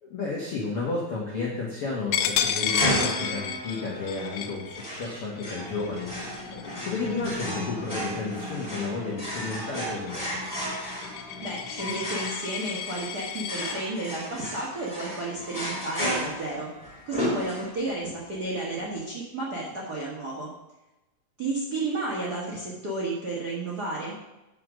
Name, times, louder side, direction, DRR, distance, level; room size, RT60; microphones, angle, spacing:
voice 1, 0.0-10.4, left 3 dB, 75° left, -4 dB, 1.3 m, -32 dB
Coin (dropping), 2.1-7.5 8.0-8.3 8.6-13.8, left 9 dB, 90° left, 2.8 m, -32 dB
sound 1, 2.7-18.0, equal, 10° left, 2.0 m, -34 dB
sound 2, 5.6-12.3, left 4 dB, 55° left, 1.3 m, -41 dB
voice 2, 11.4-16.7 17.1-20.5 21.4-24.1, right 2 dB, 85° right, -5 dB, 0.8 m, -32 dB
7.7 x 5.7 x 6.3 m, 0.97 s
omnidirectional pair, 4.6 m